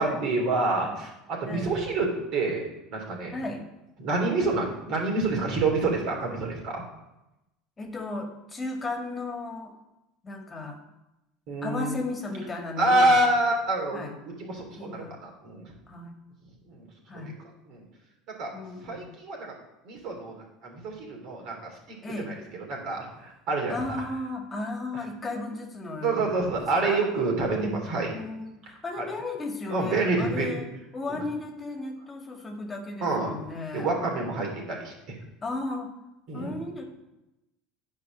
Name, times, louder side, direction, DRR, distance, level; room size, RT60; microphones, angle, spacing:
voice 1, 0.0-3.3 4.0-6.8 11.5-12.0 12.8-15.7 16.7-16.9 17.1-17.8 18.4-18.5 18.8-19.5 19.8-21.7 22.3-22.4 22.7-24.0 26.0-28.1 29.0-29.1 29.7-30.6 31.1-31.2 33.0-33.3 33.7-35.2 36.3-36.5, right 2 dB, 55° right, 0 dB, 3.4 m, -27 dB
voice 2, 3.3-3.6 7.8-9.7 10.2-10.8 11.6-13.1 13.9-14.1 14.8-15.1 15.9-16.1 17.1-17.4 18.5-19.1 22.0-22.3 23.7-27.0 27.5-27.9 28.1-30.7 30.9-33.9 35.4-35.9 36.3-36.8, left 2 dB, 25° left, 3 dB, 1.8 m, -35 dB
9.5 x 4.6 x 7.4 m, 0.93 s
hypercardioid pair, 80°, 0 cm